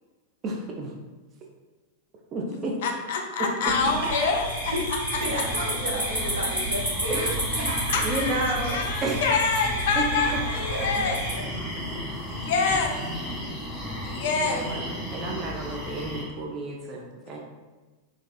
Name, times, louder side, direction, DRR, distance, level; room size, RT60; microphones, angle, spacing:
voice 1, 0.4-0.9 2.3-2.8 7.1-7.7 8.0-9.2 10.0-10.1 14.3-17.4, right 2 dB, 30° right, 0 dB, 0.3 m, -32 dB
voice 2, 2.5-4.5 7.9-11.2 12.3-13.0 14.0-14.6, left 4 dB, 55° left, 2 dB, 0.3 m, -26 dB
sound 1, 3.6-11.3, equal, 85° right, 1.2 m, -31 dB
voice 3, 4.4-4.9 5.2-8.0 10.4-11.4, equal, 65° right, -5 dB, 0.7 m, -33 dB
sound 2, 5.2-16.2, left 1 dB, ahead, 0.7 m, -35 dB
2.3 x 2.3 x 2.3 m, 1.2 s
figure-of-eight pair, 90°, 0 cm